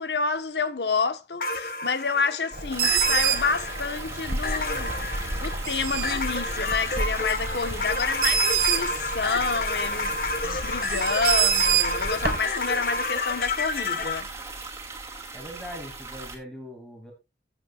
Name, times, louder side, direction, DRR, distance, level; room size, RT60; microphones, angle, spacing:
voice 1, 0.0-5.1 5.4-14.3, left 4 dB, 70° left, 1.2 m, -29 dB
sound 1, 1.4-14.2, left 3 dB, 55° left, 1.4 m, -30 dB
Bird, 2.5-12.4, right 7 dB, 55° right, 1.5 m, -28 dB
water stream, 2.7-16.3, right 3 dB, 15° right, 2.7 m, -39 dB
voice 2, 15.3-17.1, equal, 5° left, 2.6 m, -41 dB
16.0 x 7.9 x 2.4 m
head